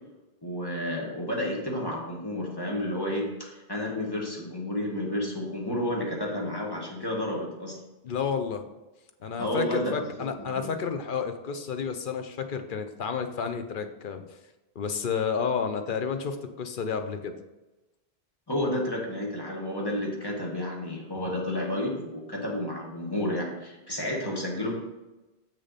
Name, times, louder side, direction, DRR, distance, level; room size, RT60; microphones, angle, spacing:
voice 1, 0.4-7.8 9.4-10.1 10.6-10.7 18.5-24.7, left 1 dB, 25° left, -2 dB, 1.6 m, -31 dB
voice 2, 8.0-8.7 9.2-14.2 14.8-17.3, left 6 dB, 55° left, 7 dB, 0.8 m, -31 dB
6.8 x 6.5 x 4.1 m, 1.1 s
omnidirectional pair, 1.0 m